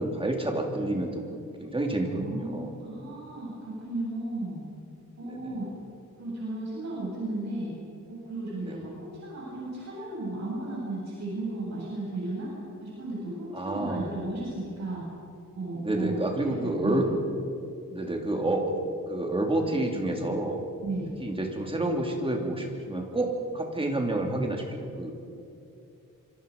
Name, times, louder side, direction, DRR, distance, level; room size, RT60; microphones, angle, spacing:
voice 1, 0.0-2.7 5.3-5.5 8.6-8.8 13.5-14.1 15.8-17.1 17.9-18.8 19.1-20.6 21.2-25.1, right 1 dB, 15° right, 1 dB, 3.0 m, -29 dB
voice 2, 2.0-4.6 5.2-5.7 6.2-7.7 8.1-12.5 12.8-15.1 15.5-16.2 16.5-17.1 20.8-21.1, right 2 dB, 55° right, -6 dB, 7.9 m, -34 dB
27.0 x 23.5 x 5.4 m, 2.6 s
wide cardioid pair, 165°, 32 cm